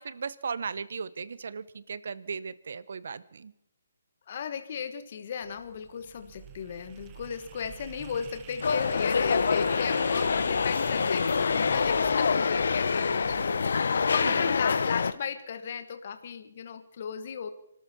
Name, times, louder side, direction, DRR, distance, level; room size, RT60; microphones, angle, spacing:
voice 1, 0.0-3.5 14.2-14.4, right 5 dB, 65° right, 18 dB, 0.8 m, -36 dB
voice 2, 4.3-17.5, left 7 dB, 50° left, 9 dB, 1.2 m, -36 dB
sound 1, 5.4-14.5, right 9 dB, 25° right, 1.0 m, -48 dB
sound 2, 8.6-15.1, left 5 dB, 70° left, 0.7 m, -26 dB
25.5 x 13.0 x 4.2 m, 0.78 s
hypercardioid pair, 150°, 0 cm